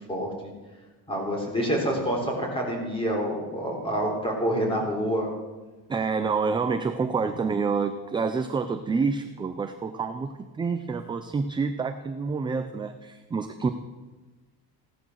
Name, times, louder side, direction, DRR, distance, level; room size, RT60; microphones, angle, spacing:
voice 1, 1.1-5.3, equal, 15° left, 0 dB, 3.8 m, -27 dB
voice 2, 5.9-13.7, right 5 dB, 15° right, 7 dB, 0.4 m, -28 dB
16.0 x 11.5 x 6.3 m, 1.3 s
cardioid pair, 180°, 38 cm